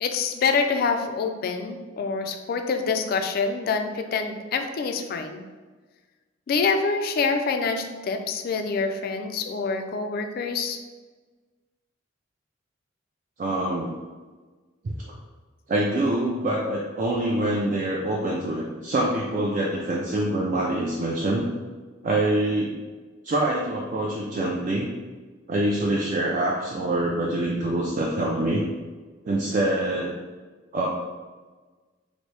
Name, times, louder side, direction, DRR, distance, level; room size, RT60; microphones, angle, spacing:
voice 1, 0.0-5.4 6.5-10.8, left 4 dB, 50° left, 6 dB, 0.3 m, -26 dB
voice 2, 13.4-14.0 14.8-14.9 15.7-21.5 22.0-22.8 23.2-24.9 25.5-28.6 29.2-30.1 30.7-30.9, right 1 dB, 40° right, -3 dB, 0.3 m, -25 dB
2.9 x 2.6 x 3.2 m, 1.3 s
head